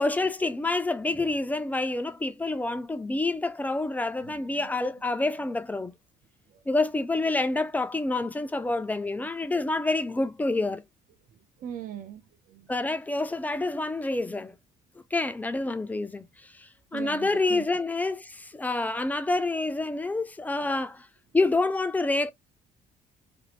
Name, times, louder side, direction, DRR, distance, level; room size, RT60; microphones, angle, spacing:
voice 1, 0.0-5.9 6.7-10.8 12.7-14.5 15.1-21.1 21.3-22.3, left 2 dB, 10° left, 0.3 m, -28 dB
voice 2, 4.3-4.7 6.5-6.6 11.6-12.7 16.9-17.6, right 10 dB, 55° right, 0.5 m, -41 dB
2.6 x 2.0 x 3.0 m
cardioid pair, 110°, 17 cm